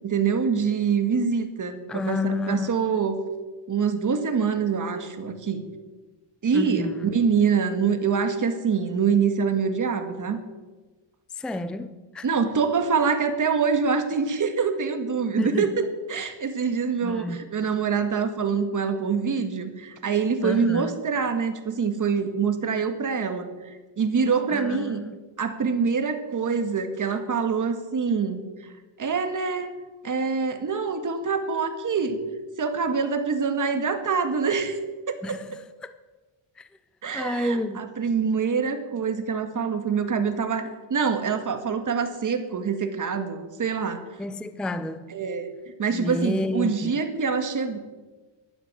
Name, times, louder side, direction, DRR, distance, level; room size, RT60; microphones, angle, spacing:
voice 1, 0.0-3.2 3.7-5.7 6.4-10.4 12.2-25.0 25.4-28.4 29.0-29.7 30.0-32.2 32.6-34.8 35.1-35.4 37.0-44.0 45.1-45.5 45.8-47.8, right 5 dB, 35° right, 1.8 m, -25 dB
voice 2, 1.9-2.7 6.5-7.1 11.3-12.3 15.4-15.8 17.0-17.5 20.4-21.0 24.5-25.2 35.2-35.5 35.8-35.9 36.6-36.7 37.1-37.8 44.2-45.1 45.9-47.0, left 1 dB, ahead, 0.5 m, -30 dB
11.5 x 11.5 x 8.9 m
cardioid pair, 135°, 50 cm